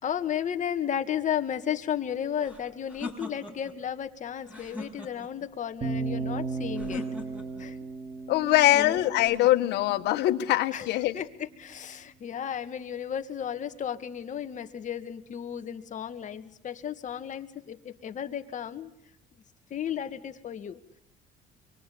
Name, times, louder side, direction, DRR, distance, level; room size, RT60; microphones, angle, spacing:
voice 1, 0.0-7.0 7.6-7.7 8.7-9.0 10.7-11.3 11.6-18.9 19.7-20.8, left 9 dB, 45° left, 8 dB, 2.1 m, -34 dB
sound 1, 2.4-3.8 4.4-5.5 6.8-7.7 9.1-10.0, left 2 dB, 10° right, 7.3 m, -41 dB
sound 2, 5.8-9.9, right 4 dB, 35° right, 3.1 m, -35 dB
voice 2, 8.3-11.2, left 15 dB, 85° left, 8 dB, 1.8 m, -23 dB
26.0 x 24.0 x 8.7 m, 0.73 s
cardioid pair, 110°, 17 cm